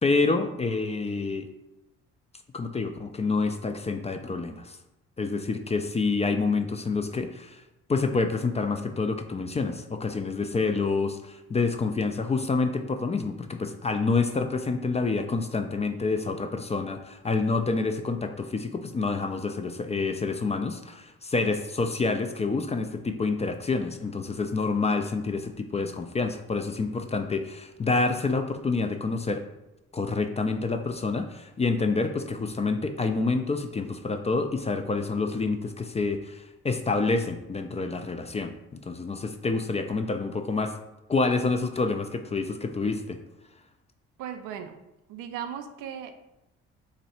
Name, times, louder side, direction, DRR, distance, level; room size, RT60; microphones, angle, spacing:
voice 1, 0.0-1.5 2.5-4.8 5.2-7.6 7.9-29.4 29.9-38.5 38.9-40.7 41.1-43.2, left 3 dB, 20° left, 7 dB, 0.3 m, -28 dB
voice 2, 44.2-44.8 45.1-46.2, right 8 dB, 75° right, 7 dB, 0.5 m, -37 dB
3.0 x 2.6 x 4.2 m, 0.90 s
hypercardioid pair, 55°, 33 cm